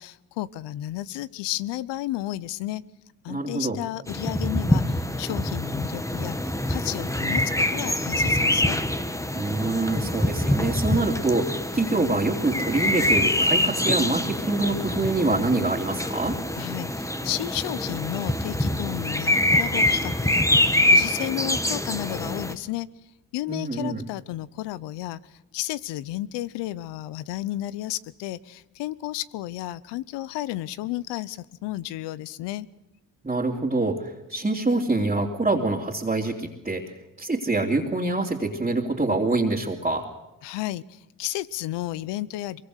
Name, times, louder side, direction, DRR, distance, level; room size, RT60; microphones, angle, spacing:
voice 1, 0.0-2.8 3.2-8.8 16.6-22.9 23.3-32.7 40.4-42.6, left 15 dB, 90° left, 19 dB, 0.8 m, -32 dB
voice 2, 3.3-3.8 9.3-16.4 23.5-24.0 33.2-40.0, right 2 dB, 15° right, -3 dB, 3.0 m, -25 dB
sound 1, 4.1-22.5, left 1 dB, 5° left, 1.6 m, -25 dB
23.0 x 23.0 x 6.6 m, 0.97 s
supercardioid pair, 65°, 41 cm